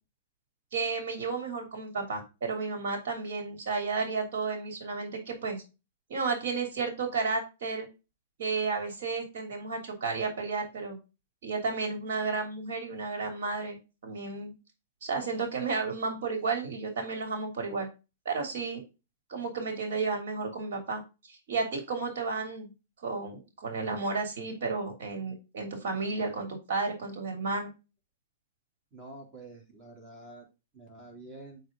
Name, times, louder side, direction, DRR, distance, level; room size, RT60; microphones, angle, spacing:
voice 1, 0.7-5.6 6.1-7.9 8.4-11.0 11.4-13.8 14.0-14.5 15.0-17.9 18.2-18.8 19.3-21.0 21.3-22.7 23.0-27.7, right 4 dB, 70° right, 4 dB, 3.1 m, -32 dB
voice 2, 28.9-30.5 30.7-31.6, right 2 dB, 25° right, 0 dB, 3.4 m, -47 dB
7.9 x 5.0 x 3.9 m, 0.28 s
hypercardioid pair, 140°, 0 cm